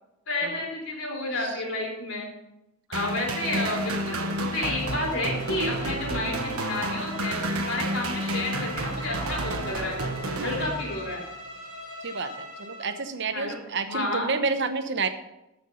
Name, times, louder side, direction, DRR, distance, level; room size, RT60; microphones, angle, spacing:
voice 1, 0.3-2.3 2.9-10.0 10.4-11.2 13.3-13.6 13.9-14.3, left 2 dB, 60° left, -2 dB, 3.7 m, -31 dB
sound 1, 2.9-11.2, right 1 dB, 75° right, 1.3 m, -31 dB
Bowed string instrument, 4.6-13.0, left 1 dB, 85° left, 2.6 m, -41 dB
voice 2, 12.6-15.1, right 4 dB, 50° right, 9 dB, 0.9 m, -29 dB
14.0 x 5.9 x 5.7 m, 0.91 s
head